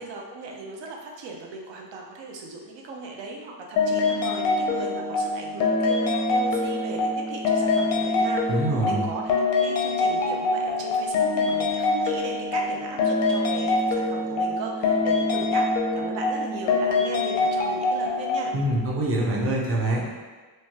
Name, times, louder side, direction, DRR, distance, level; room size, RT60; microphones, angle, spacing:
voice 1, 0.0-18.5, right 3 dB, 85° right, 0 dB, 0.6 m, -37 dB
sound 1, 3.8-18.5, left 3 dB, 90° left, 0.6 m, -24 dB
voice 2, 8.5-9.0 18.5-20.0, right 1 dB, 35° right, -3 dB, 0.5 m, -24 dB
3.1 x 2.2 x 2.7 m, 1.4 s
wide cardioid pair, 125°, 43 cm